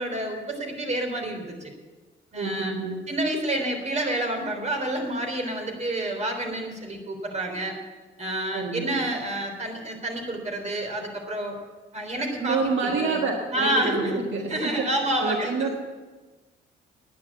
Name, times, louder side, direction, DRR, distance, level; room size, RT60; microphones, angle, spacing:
voice 1, 0.0-1.7 2.3-2.8 3.1-7.8 8.2-11.6 11.9-13.2 13.5-14.2 14.5-15.7, right 1 dB, 35° right, 4 dB, 3.6 m, -29 dB
voice 2, 2.3-3.1 8.5-9.0 12.4-15.8, right 3 dB, 70° right, 1 dB, 1.7 m, -28 dB
10.0 x 10.0 x 8.2 m, 1.3 s
cardioid pair, 90°, 20 cm